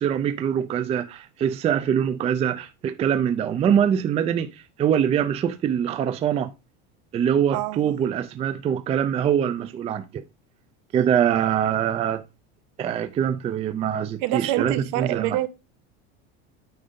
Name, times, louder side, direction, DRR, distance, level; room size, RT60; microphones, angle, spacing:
voice 1, 0.0-6.5 7.1-10.2 10.9-12.2 12.8-15.4, right 9 dB, 20° right, 0.4 m, -24 dB
voice 2, 7.5-7.9 14.2-15.5, right 14 dB, 65° right, 1.1 m, -26 dB
8.7 x 5.3 x 3.7 m
cardioid pair, 155°, 33 cm